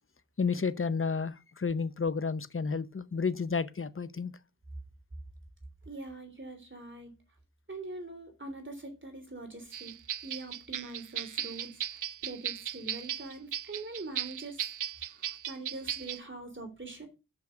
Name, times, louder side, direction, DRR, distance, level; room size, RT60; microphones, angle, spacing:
voice 1, 0.4-4.3, left 5 dB, 40° left, 0.8 m, -31 dB
voice 2, 5.8-7.1 7.7-9.9 10.2-14.6 15.0-17.1, right 2 dB, 35° right, 3.3 m, -43 dB
sound 1, 9.7-16.2, right 10 dB, 65° right, 0.4 m, -37 dB
6.3 x 5.9 x 6.2 m
cardioid pair, 45°, 33 cm